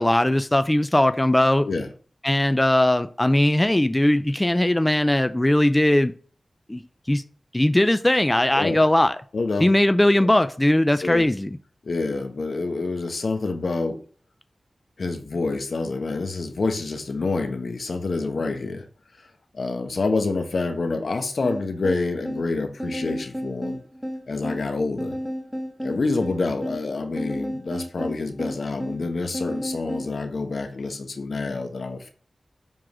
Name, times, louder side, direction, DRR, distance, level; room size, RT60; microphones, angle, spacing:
voice 1, 0.0-1.7 2.2-6.1 6.7-6.8 7.1-7.2 7.5-9.2 9.6-11.6, left 1 dB, 20° left, 0.5 m, -19 dB
voice 2, 9.3-9.7 10.2-10.3 11.0-11.3 11.8-14.0 15.0-18.8 19.5-23.8 24.3-25.2 25.8-32.1, left 3 dB, 70° left, 1.2 m, -27 dB
sound 1, 21.4-30.1, equal, 5° right, 2.2 m, -33 dB
7.5 x 3.8 x 6.1 m
cardioid pair, 55°, 0 cm